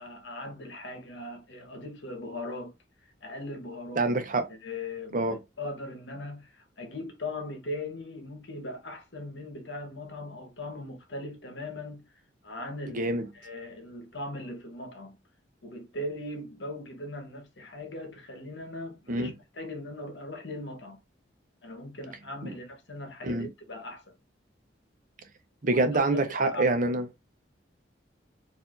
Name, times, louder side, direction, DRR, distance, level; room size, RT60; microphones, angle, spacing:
voice 1, 0.0-2.7 3.0-4.1 4.5-12.0 12.4-15.2 15.6-21.0 21.6-24.2 25.7-26.6, left 1 dB, 70° left, 1.2 m, -39 dB
voice 2, 4.0-4.5 5.1-5.3 12.9-13.2 19.1-19.3 22.4-22.5 23.2-23.5 25.6-27.0, right 2 dB, 45° right, 0.8 m, -26 dB
4.4 x 2.7 x 2.5 m
head